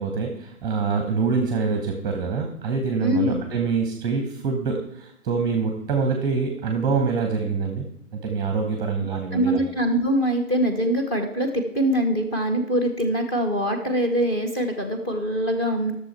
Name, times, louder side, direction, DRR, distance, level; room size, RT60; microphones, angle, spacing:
voice 1, 0.0-7.9 8.1-9.6, right 5 dB, 10° right, 3 dB, 0.9 m, -25 dB
voice 2, 3.0-3.4 9.1-15.9, equal, 20° left, 6 dB, 0.9 m, -23 dB
11.5 x 6.7 x 4.3 m, 0.76 s
figure-of-eight pair, 135°, 39 cm